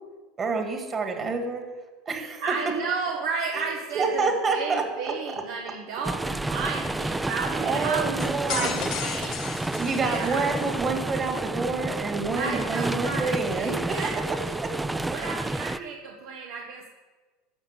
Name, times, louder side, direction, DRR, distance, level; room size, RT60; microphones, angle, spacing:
voice 1, 0.4-1.6 2.1-2.4 3.5-3.7 3.9-4.8 7.2-7.3 7.6-8.9 9.8-13.7 14.6-14.7 15.7-15.8, right 4 dB, 25° right, 4 dB, 2.2 m, -28 dB
voice 2, 2.4-10.5 12.3-14.7 15.1-16.9, right 5 dB, 70° right, 0 dB, 1.5 m, -33 dB
sound 1, 6.0-15.8, right 2 dB, 5° right, 0.3 m, -30 dB
sound 2, 8.2-10.7, left 9 dB, 45° left, 1.1 m, -35 dB
13.0 x 6.5 x 8.2 m, 1.3 s
supercardioid pair, 135°, 0 cm